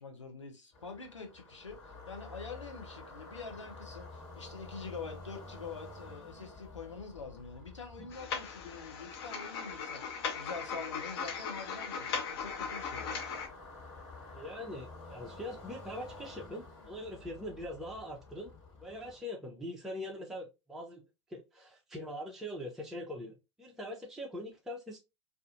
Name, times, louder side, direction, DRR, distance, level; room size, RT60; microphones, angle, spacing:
voice 1, 0.0-13.2, left 4 dB, 90° left, 0.8 m, -45 dB
sound 1, 0.7-19.2, left 3 dB, 35° left, 1.7 m, -51 dB
sound 2, 8.1-13.5, left 5 dB, 55° left, 0.6 m, -38 dB
voice 2, 14.3-18.5 18.8-21.0 21.3-25.0, left 1 dB, ahead, 0.5 m, -42 dB
2.5 x 2.5 x 2.4 m
figure-of-eight pair, 100°, 15 cm